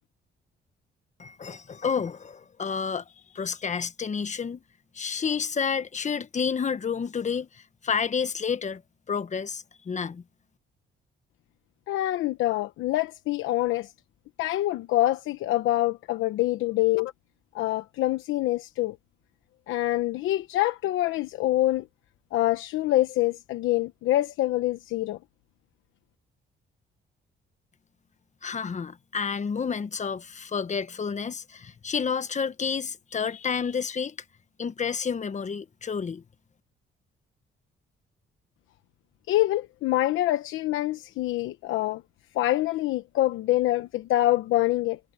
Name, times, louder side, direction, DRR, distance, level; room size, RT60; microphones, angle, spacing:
voice 1, 1.2-3.0 3.3-4.6 4.9-8.8 9.1-10.2 28.4-34.1 34.6-36.2, left 6 dB, 35° left, 1.4 m, -30 dB
voice 2, 11.9-13.9 14.4-17.1 17.5-19.0 19.7-21.9 22.3-25.2 39.3-42.0 42.3-45.0, left 15 dB, 90° left, 1.0 m, -25 dB
cardioid pair, 90°, 20 cm